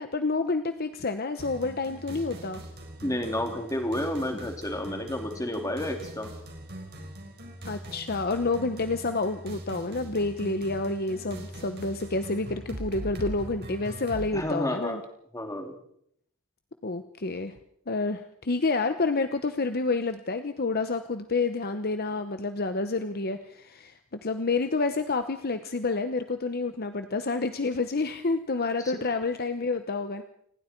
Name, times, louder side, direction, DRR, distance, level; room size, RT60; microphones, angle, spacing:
voice 1, 0.0-2.6 7.6-15.0 16.8-17.5 17.9-30.2, left 3 dB, 45° left, 9 dB, 1.0 m, -29 dB
sound 1, 1.4-14.3, right 1 dB, 50° right, 4.9 m, -41 dB
voice 2, 3.0-6.3 14.3-15.0 15.3-15.8 28.8-28.9, left 1 dB, 15° left, 3 dB, 3.3 m, -30 dB
28.5 x 19.5 x 4.6 m, 0.71 s
head